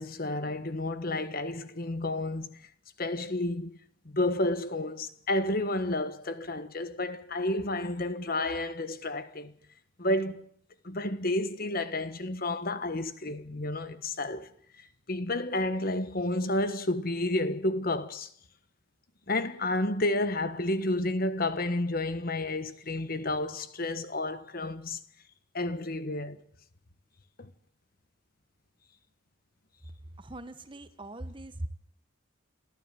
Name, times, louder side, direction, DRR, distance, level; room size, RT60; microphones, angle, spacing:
voice 1, 0.0-2.7 3.0-3.7 4.0-9.5 10.0-10.5 10.8-14.5 15.1-18.3 19.3-25.0 25.5-26.4 27.4-27.5, left 2 dB, 45° left, 1.4 m, -31 dB
voice 2, 30.2-31.7, right 1 dB, 25° right, 1.3 m, -40 dB
27.5 x 14.5 x 9.2 m
head